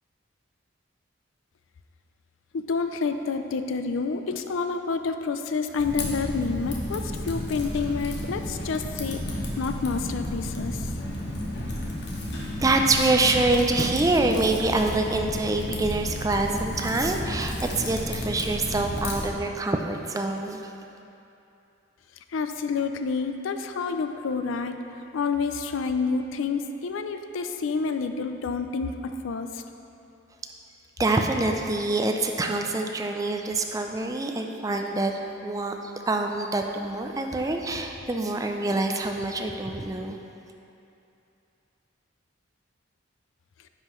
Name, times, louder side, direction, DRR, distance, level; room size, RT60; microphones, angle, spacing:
voice 1, 2.5-10.9 22.3-24.8 25.1-29.6, left 4 dB, 80° left, 8 dB, 0.4 m, -29 dB
Typing, 5.8-19.3, left 1 dB, 55° left, 1.0 m, -32 dB
voice 2, 12.6-20.7 31.0-35.1 35.4-40.2, right 2 dB, 15° right, 3 dB, 0.3 m, -25 dB
9.8 x 5.7 x 3.1 m, 2.8 s
head